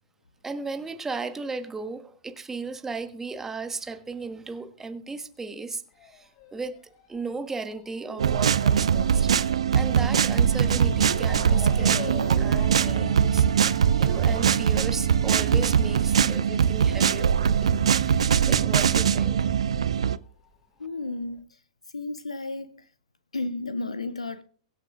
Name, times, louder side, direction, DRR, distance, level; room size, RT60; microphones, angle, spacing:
voice 1, 0.4-6.8 7.1-9.3 9.7-13.4 14.0-19.4, right 4 dB, 10° right, 1.3 m, -36 dB
Motor vehicle (road) / Siren, 5.9-18.9 19.2-20.4 21.0-21.1 21.4-21.5, left 7 dB, 45° left, 2.9 m, -45 dB
sound 1, 8.2-20.2, right 8 dB, 70° right, 0.5 m, -22 dB
Bass guitar, 10.3-19.9, right 9 dB, 40° right, 1.2 m, -36 dB
voice 2, 20.8-21.5 21.9-22.8 23.3-24.4, left 2 dB, 85° left, 0.6 m, -33 dB
23.5 x 7.9 x 2.4 m
figure-of-eight pair, 105°, 3 cm